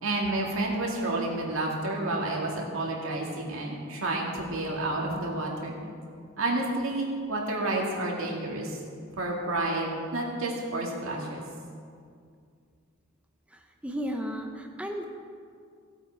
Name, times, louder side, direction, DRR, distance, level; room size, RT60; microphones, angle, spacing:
voice 1, 0.0-5.7 6.4-8.8 9.1-11.4, right 2 dB, 90° right, -1 dB, 2.2 m, -30 dB
voice 2, 13.8-15.0, equal, 5° right, 3 dB, 0.7 m, -33 dB
17.0 x 7.9 x 4.6 m, 2.2 s
head